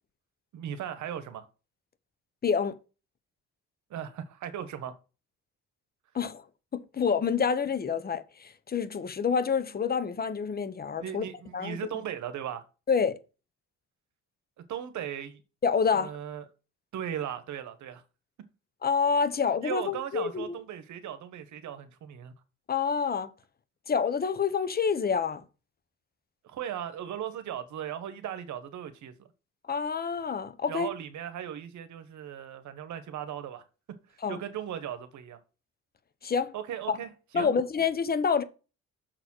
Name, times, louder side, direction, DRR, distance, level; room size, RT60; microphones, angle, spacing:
voice 1, 0.5-1.5 3.9-4.9 11.0-12.7 14.7-15.4 15.9-16.4 16.9-18.0 19.6-22.3 26.4-29.1 30.7-33.6 34.3-35.4 36.5-37.5, right 10 dB, 70° right, 1.1 m, -37 dB
voice 2, 2.4-2.8 6.1-6.4 6.7-11.3 11.5-11.8 12.9-13.2 15.6-16.1 18.8-20.6 22.7-23.3 23.9-25.4 29.7-30.9 34.2-34.4 36.2-36.5 36.9-37.0 37.3-38.4, left 6 dB, 30° left, 0.8 m, -27 dB
6.4 x 4.1 x 6.1 m
cardioid pair, 90°, 30 cm